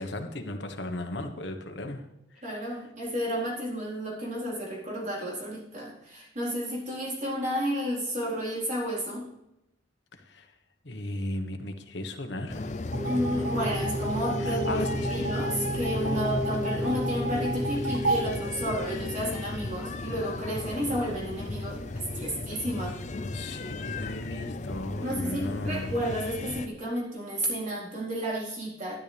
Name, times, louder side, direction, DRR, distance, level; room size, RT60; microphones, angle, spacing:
voice 1, 0.0-2.1 2.3-2.8 10.1-10.5 10.8-12.7 14.4-15.4 16.0-16.9 23.3-26.0, left 1 dB, 65° left, 5 dB, 1.4 m, -36 dB
voice 2, 2.4-9.3 13.0-14.8 15.1-23.0 25.0-29.0, equal, 40° right, -4 dB, 4.2 m, -32 dB
sound 1, 12.5-26.7, left 2 dB, 40° left, 0.6 m, -35 dB
sound 2, 12.9-19.4, right 1 dB, 80° right, 1.4 m, -31 dB
12.5 x 11.5 x 3.5 m, 0.84 s
head